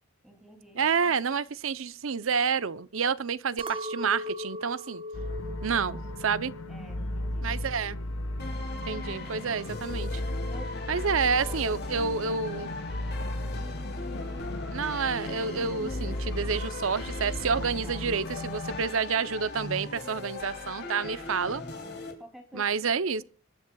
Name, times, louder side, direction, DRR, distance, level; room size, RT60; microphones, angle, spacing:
voice 1, 0.2-1.5 6.7-7.5 10.5-11.8 13.6-13.9 14.9-15.0 15.4-15.8 17.5-18.2 22.2-22.9, equal, ahead, 2.9 m, -50 dB
voice 2, 0.8-5.0 5.6-6.5 7.4-8.0 8.8-10.2 10.9-12.7 14.7-21.6 22.5-23.2, right 5 dB, 75° right, 0.7 m, -29 dB
Chink clink, 3.6-8.0 8.3-8.9, left 1 dB, 25° right, 1.1 m, -40 dB
sound 1, 5.1-18.9, left 1 dB, 85° left, 1.2 m, -35 dB
sound 2, 8.4-22.1, left 3 dB, 50° left, 3.3 m, -40 dB
26.0 x 10.5 x 2.3 m
head